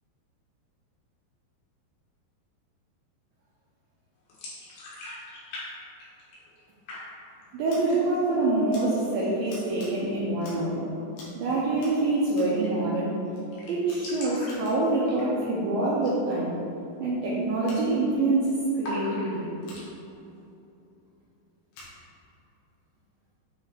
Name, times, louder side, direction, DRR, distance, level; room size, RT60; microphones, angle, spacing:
sound 1, 4.3-5.7 5.9-6.6 6.9-7.4 7.8-8.3 8.6-8.7 9.1-9.7 11.4-11.6 11.9-12.0 12.2-12.3 12.6-13.0 13.3-13.4 13.5-15.6 15.9-16.2 16.5-16.6 17.2-17.5 17.7-18.3 18.8-19.9, left 1 dB, 70° left, 3.5 m, -41 dB
voice 1, 7.5-10.8 11.3-13.2 13.7-16.6 17.0-19.5, right 2 dB, 75° right, -7 dB, 2.2 m, -26 dB
Scissors, 7.6-7.8 8.7-8.8 9.5-9.9 10.4-10.7 11.1-11.4 11.8-12.6 13.3-13.5 13.8-14.9 17.6-17.8 19.6-19.9 21.7-21.9, left 2 dB, 90° left, 3.9 m, -49 dB
9.5 x 3.5 x 4.1 m, 2.8 s
omnidirectional pair, 5.1 m